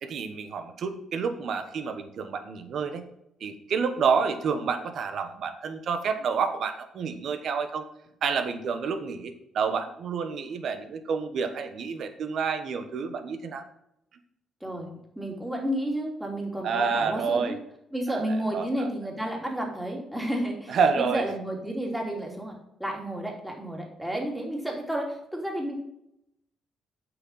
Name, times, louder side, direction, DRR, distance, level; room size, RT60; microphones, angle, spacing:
voice 1, 0.0-3.0 3.4-7.9 8.2-13.6 16.6-17.5 18.1-18.9 20.7-21.3, right 5 dB, 65° right, 8 dB, 1.2 m, -29 dB
voice 2, 14.6-17.6 17.9-25.7, right 1 dB, 5° right, 0 dB, 2.9 m, -31 dB
7.9 x 6.1 x 5.6 m, 0.79 s
cardioid pair, 90°, 0 cm